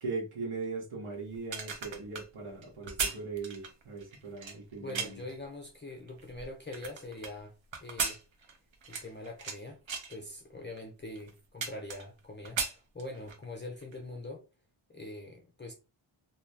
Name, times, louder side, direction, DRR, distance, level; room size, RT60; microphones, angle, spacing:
voice 1, 0.0-5.2, right 4 dB, 90° right, 1.0 m, -39 dB
sound 1, 1.3-5.3 5.9-7.3 7.7-9.6 9.9-10.2 10.8-10.9 11.2-12.2 12.4-13.4 13.8-14.0, right 5 dB, 65° right, 0.8 m, -37 dB
voice 2, 4.8-7.5 7.8-8.2 8.9-9.8 10.1-14.4 14.9-15.7, left 2 dB, 25° left, 0.5 m, -43 dB
2.6 x 2.3 x 3.3 m
wide cardioid pair, 100°, 49 cm